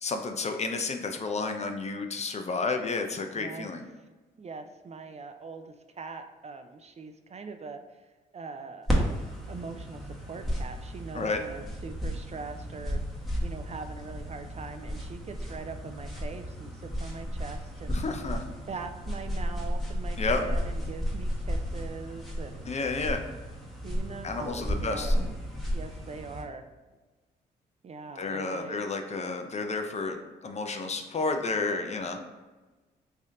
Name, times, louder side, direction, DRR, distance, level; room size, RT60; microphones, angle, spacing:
voice 1, 0.0-3.8 11.1-11.4 17.9-18.5 20.2-20.4 22.7-23.2 24.2-25.1 28.2-30.2 30.4-32.2, left 3 dB, 35° left, 5 dB, 0.5 m, -31 dB
voice 2, 3.3-3.7 4.4-7.8 8.3-8.9 9.5-13.0 13.4-18.0 18.7-22.8 23.8-25.2 25.7-26.7 27.8-28.8, right 4 dB, 35° right, 7 dB, 0.4 m, -42 dB
sound 1, 8.9-26.4, equal, ahead, 1.1 m, -33 dB
3.3 x 2.7 x 3.6 m, 1.2 s
supercardioid pair, 60°, 19 cm